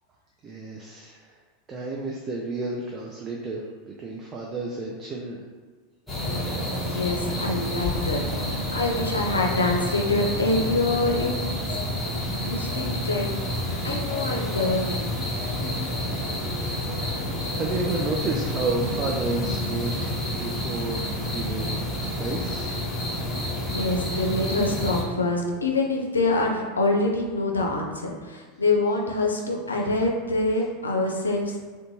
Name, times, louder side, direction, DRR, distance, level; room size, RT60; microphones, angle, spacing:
voice 1, 0.4-1.3 1.7-3.6 3.9-5.4 17.5-22.7, right 3 dB, 30° right, -2 dB, 0.3 m, -32 dB
sound 1, 6.1-25.0, left 1 dB, 5° left, 0.9 m, -29 dB
voice 2, 6.7-11.3 12.5-15.1 23.7-31.6, left 2 dB, 90° left, 0 dB, 0.4 m, -25 dB
2.6 x 2.1 x 2.9 m, 1.4 s
hypercardioid pair, 90°, 0 cm